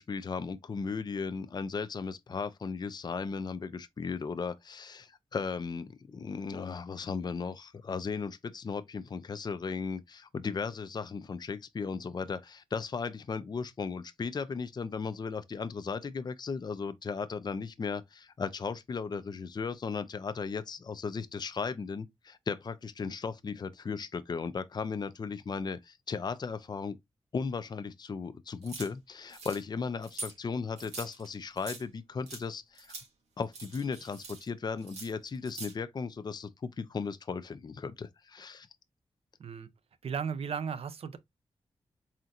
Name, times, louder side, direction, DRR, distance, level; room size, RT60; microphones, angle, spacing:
voice 1, 0.0-27.0 27.3-32.9 33.4-38.7, left 5 dB, 40° left, 0.5 m, -36 dB
sound 1, 28.6-28.9 29.3-29.6 30.0-30.3 30.8-31.8 32.3-32.4 32.8-33.1 33.4-34.5 34.8-35.7, right 3 dB, 90° right, 1.4 m, -44 dB
voice 2, 40.0-41.2, right 6 dB, 65° right, 0.6 m, -35 dB
4.3 x 3.7 x 2.4 m
cardioid pair, 75°, 11 cm